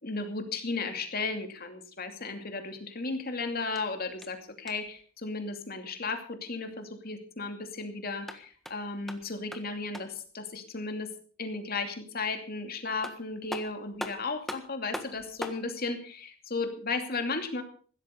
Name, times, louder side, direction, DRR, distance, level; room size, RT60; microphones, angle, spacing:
voice 1, 0.0-11.1 11.4-17.6, left 3 dB, 45° left, 6 dB, 2.6 m, -35 dB
sound 1, 3.6-5.0 8.0-10.3 12.6-12.7 13.0-15.7, equal, ahead, 1.5 m, -42 dB
16.0 x 13.0 x 5.3 m, 0.44 s
head